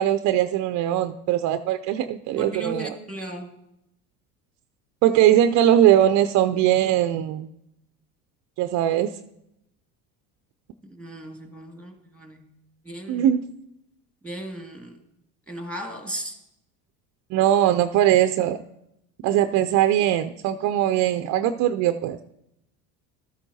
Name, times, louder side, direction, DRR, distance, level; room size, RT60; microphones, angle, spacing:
voice 1, 0.0-2.9 5.0-7.5 8.6-9.1 13.1-13.4 17.3-18.6 19.2-22.2, right 11 dB, 40° right, 9 dB, 0.4 m, -20 dB
voice 2, 2.4-3.5 10.9-12.5 12.8-13.3 14.2-15.0 15.5-16.4, right 1 dB, ahead, 2 dB, 2.0 m, -36 dB
13.0 x 8.7 x 2.7 m, 0.82 s
hypercardioid pair, 75°, 49 cm